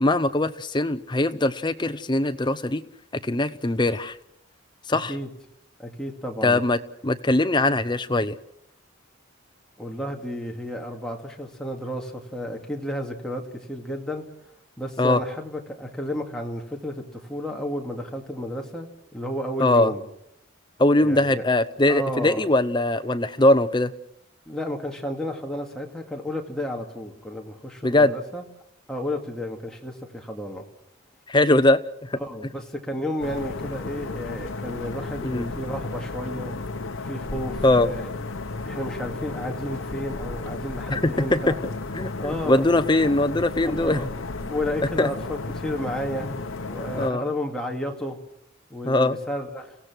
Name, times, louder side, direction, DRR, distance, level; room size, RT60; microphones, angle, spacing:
voice 1, 0.0-2.8 3.2-4.2 4.9-5.1 6.4-8.4 15.0-15.2 19.6-19.9 20.8-23.9 27.8-28.2 31.3-32.2 35.2-35.5 37.6-37.9 40.9-41.6 41.9-44.0 44.4-44.5 45.0-45.1 46.9-47.2 48.8-49.2, left 2 dB, 20° left, 10 dB, 0.7 m, -21 dB
voice 2, 5.8-6.6 9.8-14.2 14.8-20.0 21.0-21.5 21.9-22.4 24.5-28.4 28.9-30.6 32.2-36.5 37.0-38.0 38.6-41.5 42.2-42.6 43.6-44.1 44.5-46.3 46.7-48.2 48.7-49.8, equal, 5° left, 0 dB, 2.3 m, -32 dB
sound 1, 33.2-47.1, left 3 dB, 70° left, 1.0 m, -33 dB
30.0 x 16.5 x 6.2 m, 0.78 s
head